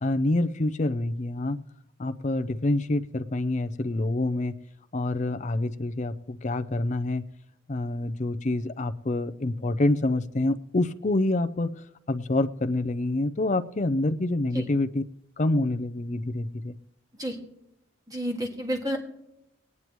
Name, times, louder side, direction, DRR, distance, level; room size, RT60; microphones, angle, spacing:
voice 1, 0.0-1.6 2.0-4.6 4.9-7.2 7.7-15.0 15.4-16.7, left 2 dB, 35° left, 10 dB, 0.5 m, -27 dB
voice 2, 18.1-19.0, equal, 20° right, 1 dB, 1.8 m, -30 dB
19.5 x 9.6 x 3.0 m, 0.79 s
head